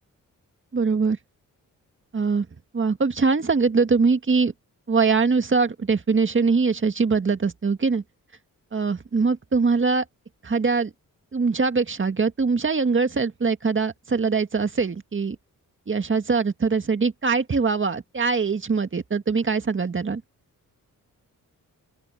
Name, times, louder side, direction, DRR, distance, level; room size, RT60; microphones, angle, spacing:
voice 1, 0.7-1.2 2.1-2.5 2.7-4.5 4.9-8.0 8.7-10.0 10.4-10.9 11.3-15.4 15.9-20.2, right 4 dB, 35° right, 1.9 m, -22 dB
open air
cardioid pair, 80°, 34 cm